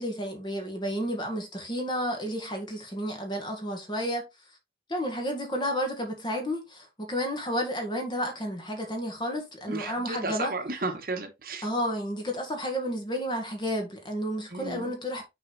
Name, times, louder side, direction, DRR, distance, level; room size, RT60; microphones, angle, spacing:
voice 1, 0.0-4.3 4.9-10.6 11.6-15.3, equal, 25° left, 1.7 m, -31 dB
voice 2, 9.7-11.6 14.5-14.9, right 2 dB, 50° right, 1.2 m, -33 dB
6.0 x 4.8 x 3.3 m
head